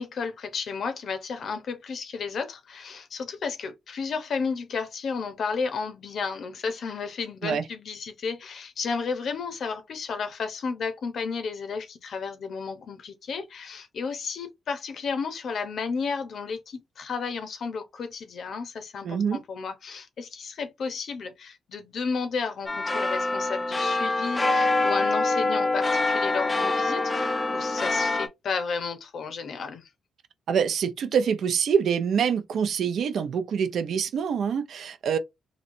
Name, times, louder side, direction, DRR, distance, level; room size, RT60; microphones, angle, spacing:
voice 1, 0.0-29.9, left 5 dB, 60° left, 0.7 m, -33 dB
voice 2, 19.0-19.4 30.5-35.2, right 7 dB, 70° right, 0.5 m, -25 dB
sound 1, 22.7-28.3, left 2 dB, 20° left, 0.4 m, -25 dB
3.1 x 2.7 x 2.6 m
cardioid pair, 110°, 0 cm